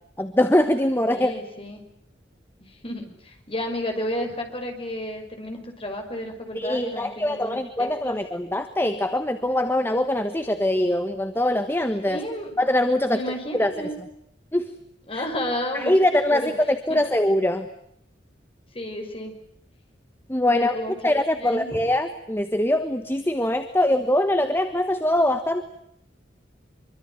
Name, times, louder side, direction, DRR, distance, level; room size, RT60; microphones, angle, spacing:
voice 1, 0.2-1.3 6.5-12.2 12.6-13.2 13.5-13.7 14.5-14.7 15.1-15.2 15.7-17.7 20.3-20.7 21.0-25.6, left 1 dB, 10° left, 8 dB, 1.3 m, -23 dB
voice 2, 1.1-1.9 2.6-8.2 12.1-12.5 13.1-14.0 15.1-16.1 16.3-16.5 16.9-17.0 18.7-19.4 20.5-20.9 21.4-21.8, left 1 dB, 30° left, 4 dB, 5.6 m, -32 dB
25.0 x 24.5 x 9.4 m, 0.72 s
head